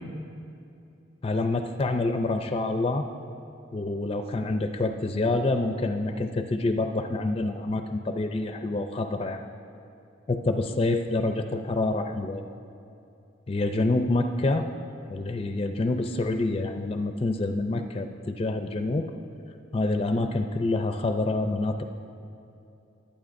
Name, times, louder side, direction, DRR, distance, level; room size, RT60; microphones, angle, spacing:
voice 1, 1.2-3.1 3.7-9.4 10.3-12.4 13.5-14.7 15.1-19.1 19.7-21.8, left 2 dB, 30° left, 6 dB, 0.4 m, -27 dB
20.5 x 8.9 x 2.6 m, 2.7 s
head